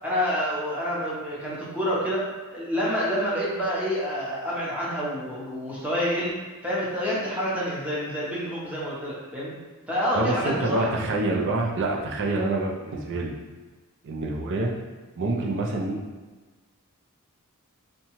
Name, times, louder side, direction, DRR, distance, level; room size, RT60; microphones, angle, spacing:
voice 1, 0.0-2.2 2.5-6.4 6.6-9.5 9.9-10.9, equal, 5° right, -7 dB, 0.7 m, -28 dB
voice 2, 10.1-13.3 14.0-14.7 15.2-16.0, right 2 dB, 55° right, -1 dB, 0.4 m, -26 dB
2.8 x 2.2 x 2.9 m, 1.3 s
head